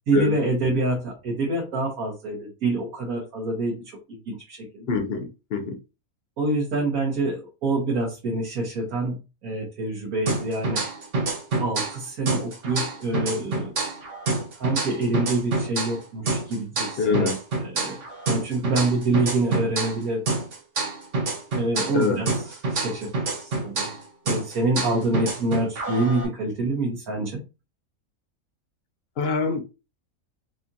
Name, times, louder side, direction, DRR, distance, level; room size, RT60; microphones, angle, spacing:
voice 1, 0.1-3.8 4.1-4.9 6.4-10.8 11.6-13.7 14.6-17.3 17.6-18.0 18.3-20.2 21.5-23.1 23.4-23.9 24.2-27.4, right 2 dB, 90° right, 1.6 m, -26 dB
voice 2, 4.9-5.8 17.0-17.4 21.9-22.2 29.2-29.6, left 5 dB, 55° left, 0.7 m, -24 dB
sound 1, 10.3-12.0 12.3-16.0 16.3-20.0 20.3-24.0 24.3-26.3, right 3 dB, 60° right, 1.3 m, -27 dB
4.9 x 2.4 x 2.7 m
omnidirectional pair, 1.5 m